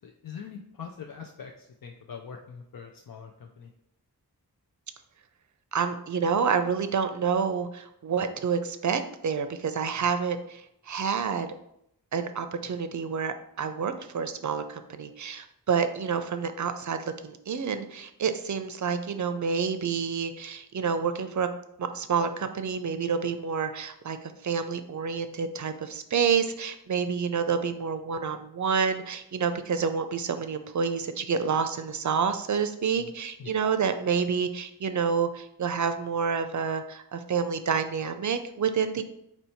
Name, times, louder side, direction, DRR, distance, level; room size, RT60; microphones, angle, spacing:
voice 1, 0.0-3.7 10.0-10.1 33.0-33.1 33.4-33.5, left 6 dB, 65° left, 3 dB, 0.5 m, -43 dB
voice 2, 5.7-10.6 10.9-11.5 12.1-21.5 21.8-24.2 24.4-39.0, right 6 dB, 50° right, 9 dB, 0.5 m, -28 dB
4.4 x 2.7 x 4.4 m, 0.76 s
wide cardioid pair, 60°, 38 cm